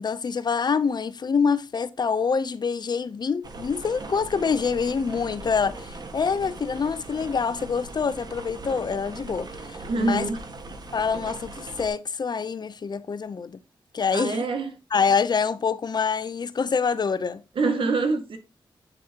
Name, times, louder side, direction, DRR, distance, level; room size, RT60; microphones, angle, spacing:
voice 1, 0.0-10.3 10.9-13.6 13.9-14.4 14.9-17.4, left 5 dB, 55° left, 0.7 m, -26 dB
sound 1, 3.4-11.9, right 2 dB, 50° right, 1.7 m, -40 dB
voice 2, 9.9-10.4 14.1-14.7 17.6-18.4, right 3 dB, 75° right, 2.1 m, -25 dB
8.0 x 7.0 x 2.9 m
wide cardioid pair, 95°, 9 cm